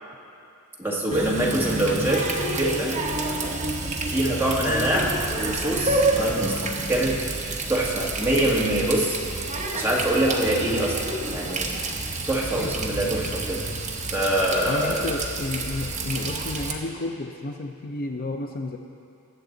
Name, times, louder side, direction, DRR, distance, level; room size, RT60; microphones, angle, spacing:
voice 1, 0.8-2.3 2.6-3.0 4.1-6.6 6.9-7.2 7.7-9.2 9.7-11.0 11.3-11.7 12.3-13.6 14.1-15.1, right 1 dB, 10° right, -5 dB, 1.8 m, -24 dB
Water tap faucet, 1.1-16.7, right 2 dB, 35° right, 1.1 m, -29 dB
voice 2, 14.7-18.8, left 2 dB, 40° left, 3 dB, 0.6 m, -32 dB
20.5 x 7.9 x 3.9 m, 2.6 s
head